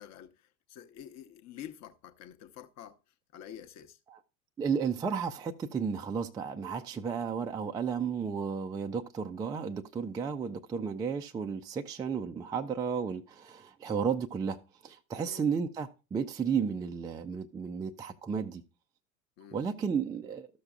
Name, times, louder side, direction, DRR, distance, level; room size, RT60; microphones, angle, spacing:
voice 1, 0.0-3.0 3.3-4.0 15.2-15.5 19.4-19.8, left 10 dB, 40° left, 0.9 m, -48 dB
voice 2, 4.6-18.6 19.5-20.5, right 6 dB, 10° right, 0.3 m, -33 dB
13.5 x 6.8 x 2.3 m
figure-of-eight pair, 80°, 42 cm